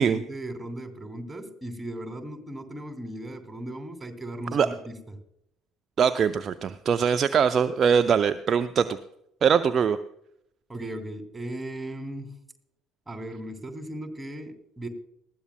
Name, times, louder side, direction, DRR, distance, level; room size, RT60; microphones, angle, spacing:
voice 1, 0.0-5.0 10.7-12.4 13.1-14.9, right 1 dB, 10° right, 5 dB, 2.7 m, -37 dB
voice 2, 6.0-9.0 9.4-10.0, right 7 dB, 40° right, 11 dB, 0.5 m, -22 dB
20.0 x 14.0 x 2.2 m, 0.76 s
figure-of-eight pair, 55°, 0 cm